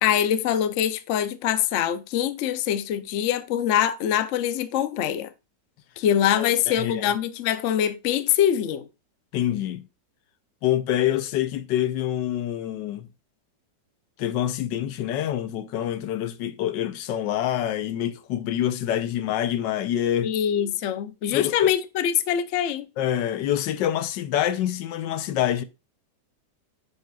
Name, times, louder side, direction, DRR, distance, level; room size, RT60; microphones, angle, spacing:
voice 1, 0.0-5.3 6.0-8.9 20.2-22.9, left 10 dB, 65° left, 0.7 m, -24 dB
voice 2, 6.4-7.1 9.3-9.9 10.6-13.1 14.2-20.4 21.3-21.7 23.0-25.6, left 11 dB, 80° left, 1.3 m, -26 dB
7.3 x 6.5 x 2.3 m
omnidirectional pair, 1.9 m